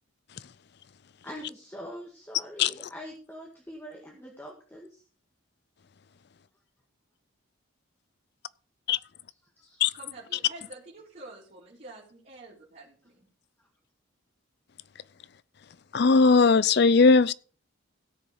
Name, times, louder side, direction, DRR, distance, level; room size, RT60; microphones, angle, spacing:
voice 1, 1.2-5.0 9.3-9.9, equal, 10° left, 1.9 m, -44 dB
voice 2, 9.9-13.3, right 2 dB, 40° right, 3.9 m, -47 dB
voice 3, 15.9-17.3, left 4 dB, 50° left, 0.5 m, -18 dB
16.5 x 6.8 x 4.8 m
head